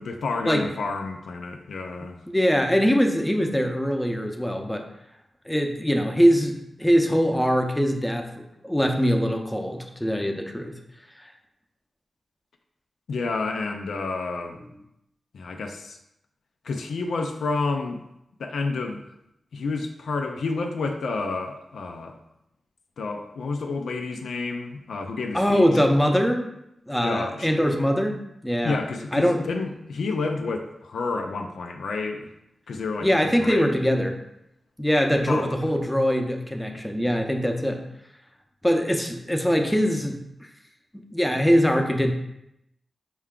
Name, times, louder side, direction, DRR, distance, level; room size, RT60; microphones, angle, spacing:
voice 1, 0.0-2.2 13.1-14.6 15.3-16.0 16.6-18.0 18.4-19.0 19.5-22.2 23.0-25.8 27.0-27.5 28.6-32.3 32.7-33.8 35.3-35.7, left 3 dB, 80° left, 4 dB, 0.3 m, -30 dB
voice 2, 2.3-4.9 5.5-10.7 11.2-11.3 25.3-26.5 26.9-28.8 29.1-29.4 33.0-34.2 34.8-37.8 38.6-40.2 40.9-42.1, equal, 10° left, 4 dB, 0.6 m, -22 dB
4.5 x 2.2 x 3.6 m, 0.82 s
cardioid pair, 40°, 0 cm